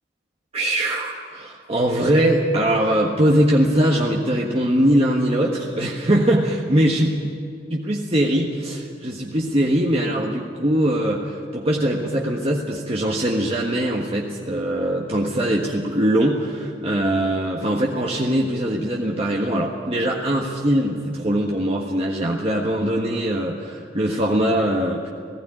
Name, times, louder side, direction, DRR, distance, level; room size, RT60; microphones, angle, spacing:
voice 1, 0.5-7.1 7.7-25.1, right 1 dB, 35° right, -2 dB, 1.5 m, -21 dB
18.5 x 16.0 x 9.1 m, 2.4 s
head